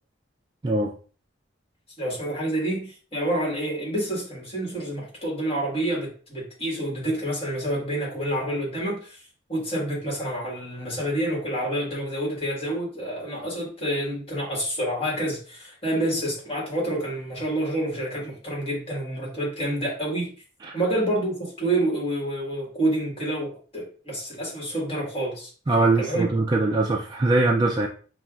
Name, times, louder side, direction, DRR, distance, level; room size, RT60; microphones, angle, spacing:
voice 1, 2.0-9.2 9.5-20.3 20.7-25.5 26.0-26.3, right 1 dB, 30° left, -3 dB, 1.5 m, -28 dB
voice 2, 25.7-27.9, right 2 dB, 20° right, -1 dB, 0.3 m, -22 dB
5.5 x 2.3 x 2.3 m, 0.40 s
head